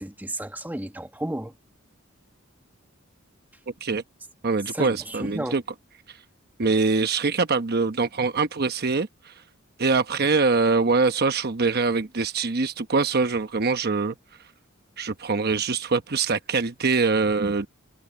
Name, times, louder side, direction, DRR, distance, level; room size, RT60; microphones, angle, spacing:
voice 1, 0.0-1.5 4.7-5.6, right 1 dB, 10° right, 1.4 m, -33 dB
voice 2, 4.4-5.6 6.6-9.3 9.8-14.1 15.0-17.7, right 4 dB, 50° right, 1.0 m, -23 dB
head